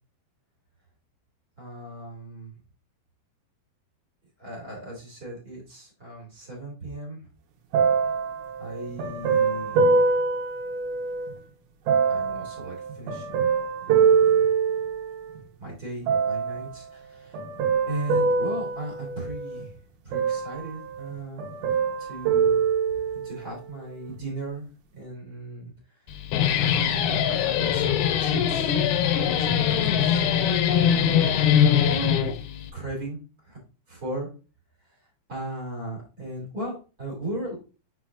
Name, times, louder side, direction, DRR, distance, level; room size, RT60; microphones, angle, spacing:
voice 1, 1.6-2.5 4.4-7.2 8.6-9.8 12.1-13.5 13.8-14.5 15.6-17.4 17.9-19.7 20.0-21.4 22.0-22.6 22.9-24.7 24.9-26.0 26.7-32.2 32.7-33.6 33.9-34.3 34.8-34.9 35.3-37.6, right 1 dB, 25° right, -2 dB, 2.2 m, -37 dB
sound 1, 7.7-11.3 11.9-15.4 16.1-16.7 17.3-19.7 20.1-21.1 21.4-23.4 24.1-24.2, right 5 dB, 80° right, 3.3 m, -24 dB
Guitar, 26.1-32.7, left 9 dB, 80° left, 2.3 m, -22 dB
6.5 x 6.1 x 2.4 m, 0.33 s
omnidirectional pair, 5.1 m